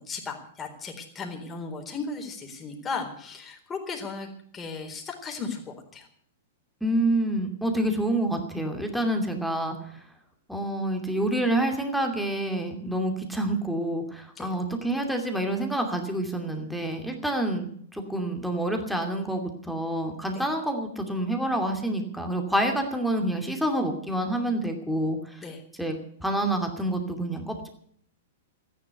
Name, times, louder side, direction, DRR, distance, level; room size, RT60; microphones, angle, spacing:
voice 1, 0.0-6.1 14.4-14.5 20.3-20.4 25.4-25.6, left 4 dB, 20° left, 2 dB, 4.0 m, -36 dB
voice 2, 6.8-9.9 10.5-25.4 25.8-25.9 26.2-27.7, right 1 dB, ahead, 3 dB, 2.6 m, -28 dB
14.0 x 10.5 x 8.2 m, 0.65 s
hypercardioid pair, 110°, 0 cm